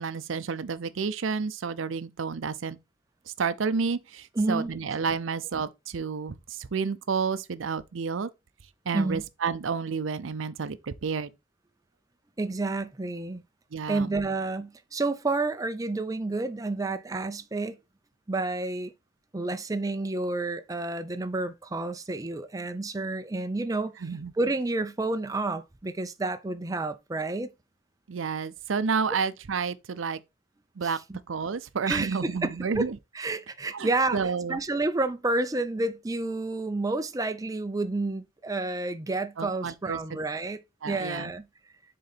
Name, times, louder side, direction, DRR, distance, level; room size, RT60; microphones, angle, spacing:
voice 1, 0.0-2.8 3.4-8.3 8.9-11.3 13.7-14.1 24.0-24.3 28.1-30.2 30.8-31.0 31.3-33.0 33.7-34.6 39.4-40.2 40.8-41.3, right 5 dB, 90° right, 0.6 m, -30 dB
voice 2, 4.4-4.7 8.9-9.2 12.4-13.4 13.9-17.8 18.3-18.9 19.3-23.9 24.4-27.5 30.8-31.2 31.9-32.9 33.1-40.6 40.8-41.5, right 2 dB, 20° right, 0.5 m, -30 dB
6.6 x 3.8 x 4.1 m
head